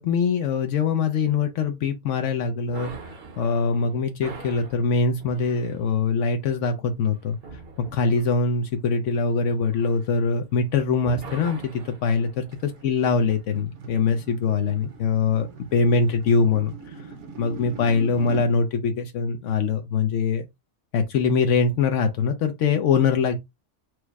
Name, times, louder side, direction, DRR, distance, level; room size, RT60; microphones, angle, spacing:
voice 1, 0.0-7.4 7.8-12.4 12.8-17.0 17.4-20.5 20.9-23.4, left 5 dB, 80° left, 1.0 m, -23 dB
sound 1, 2.7-10.7 11.0-13.3, right 4 dB, 55° right, 0.9 m, -44 dB
sound 2, 12.5-18.5, right 4 dB, 75° right, 1.3 m, -41 dB
4.8 x 2.0 x 4.6 m
omnidirectional pair, 1.2 m